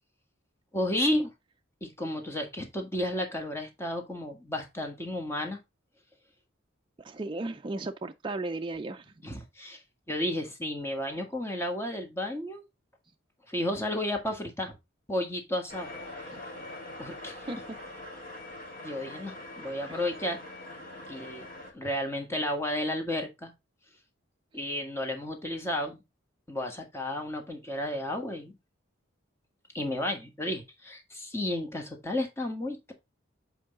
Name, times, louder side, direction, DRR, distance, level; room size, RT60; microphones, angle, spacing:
voice 1, 0.7-1.3 1.8-5.6 9.2-9.8 10.1-12.6 13.5-14.7 15.1-15.9 17.0-17.4 18.8-20.4 21.1-21.5 21.7-23.5 24.5-26.0 26.5-28.6 29.7-32.9, left 1 dB, 15° left, 1.6 m, -32 dB
voice 2, 7.0-9.1 16.3-16.4 17.5-17.8 19.9-20.0, right 2 dB, 25° right, 0.4 m, -36 dB
sound 1, 15.7-21.7, left 1 dB, 45° left, 2.9 m, -43 dB
7.8 x 4.6 x 3.7 m
head